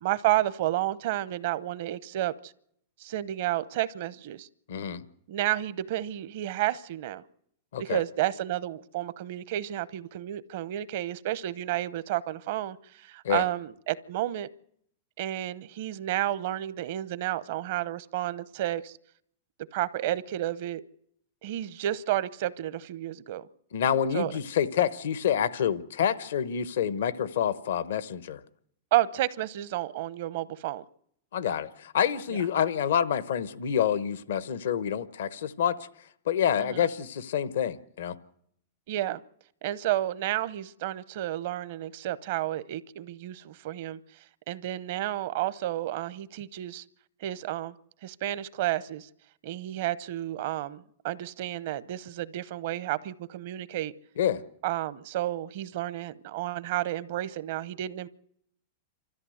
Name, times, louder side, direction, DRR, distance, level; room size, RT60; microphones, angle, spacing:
voice 1, 0.0-2.5 3.0-4.5 5.3-7.2 7.8-14.5 15.2-19.0 19.7-20.8 21.4-23.5 24.1-24.3 28.9-30.8 32.3-32.4 36.6-36.8 38.9-39.2 39.6-44.0 44.5-46.8 47.2-47.7 48.0-49.1 49.4-53.9 54.6-58.1, right 14 dB, 65° right, 0.8 m, -31 dB
voice 2, 4.7-5.0 7.7-8.0 13.2-13.4 23.7-28.4 31.3-35.8 36.3-38.2 54.2-54.4, left 9 dB, 75° left, 1.0 m, -27 dB
29.5 x 14.0 x 7.9 m
hypercardioid pair, 115°, 0 cm